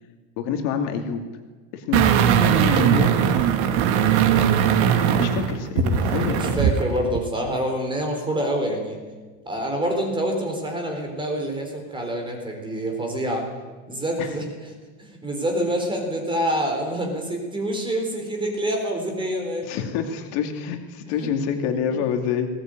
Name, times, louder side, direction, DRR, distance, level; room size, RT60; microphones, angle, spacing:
voice 1, 0.4-1.2 1.7-3.2 5.2-6.6 14.2-14.3 19.6-22.5, left 7 dB, 55° left, 4 dB, 2.6 m, -27 dB
sound 1, 1.9-6.8 7.2-7.3, right 8 dB, 50° right, 2.4 m, -19 dB
voice 2, 5.9-9.0 9.5-13.4 13.9-14.4 15.0-19.8 21.2-21.3 21.9-22.0, right 1 dB, 10° right, 2 dB, 4.1 m, -27 dB
20.5 x 18.5 x 9.0 m, 1.4 s
supercardioid pair, 155°, 44 cm